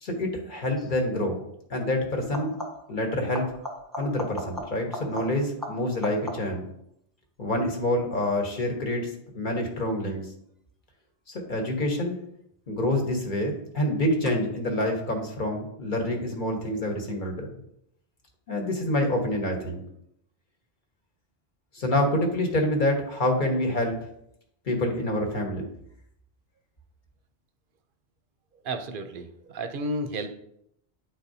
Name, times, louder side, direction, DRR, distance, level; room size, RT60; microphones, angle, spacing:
voice 1, 0.0-1.4 1.7-2.5 2.9-3.5 4.0-6.7 7.4-10.3 11.5-12.2 12.7-17.5 18.5-19.8 21.7-24.0 24.7-25.7, left 1 dB, 50° left, 2 dB, 1.2 m, -27 dB
sound 1, 0.8-1.0 2.2-3.0 3.3-6.7 12.1-12.7 14.2-14.3, left 1 dB, ahead, 1.1 m, -38 dB
voice 2, 28.6-30.3, right 1 dB, 60° right, 8 dB, 0.7 m, -32 dB
9.1 x 4.0 x 2.7 m, 0.76 s
omnidirectional pair, 1.1 m